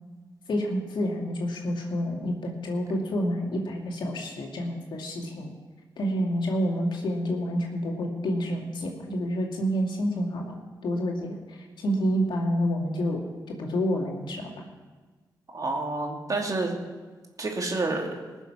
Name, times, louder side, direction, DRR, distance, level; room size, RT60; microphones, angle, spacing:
voice 1, 0.5-5.5 6.0-10.5 10.8-13.2 13.5-14.5, equal, 75° left, 0 dB, 2.4 m, -28 dB
voice 2, 15.5-16.8 17.4-18.2, right 2 dB, 45° right, 1 dB, 2.6 m, -29 dB
19.5 x 7.1 x 5.9 m, 1.3 s
cardioid pair, 55°, 8 cm